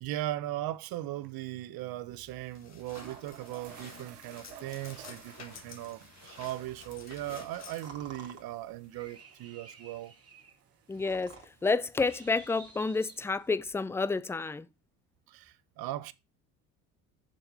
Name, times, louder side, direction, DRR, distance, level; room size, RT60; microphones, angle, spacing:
voice 1, 0.0-10.1 15.3-16.1, right 14 dB, 55° right, 0.8 m, -38 dB
sound 1, 0.7-1.0 1.2-1.3 2.4-2.5 2.8-12.2, right 9 dB, 80° right, 1.2 m, -54 dB
sound 2, 1.8-9.2, left 6 dB, 35° left, 1.6 m, -52 dB
sound 3, 7.3-13.6, right 5 dB, 30° right, 2.3 m, -52 dB
voice 2, 10.9-14.7, left 4 dB, 5° left, 0.4 m, -30 dB
7.0 x 5.8 x 4.9 m
hypercardioid pair, 60°, 45 cm